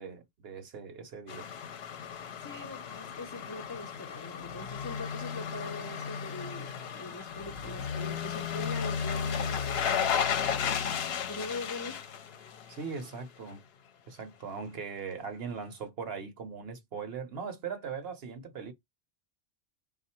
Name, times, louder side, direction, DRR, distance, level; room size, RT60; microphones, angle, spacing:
voice 1, 0.0-1.5 12.7-13.6 14.1-18.7, right 5 dB, 60° right, 1.0 m, -40 dB
sound 1, 1.3-13.2 13.5-13.6, left 7 dB, 65° left, 0.8 m, -34 dB
voice 2, 2.4-10.2 11.3-12.0, left 2 dB, 25° left, 0.4 m, -42 dB
3.7 x 2.4 x 4.2 m
omnidirectional pair, 1.2 m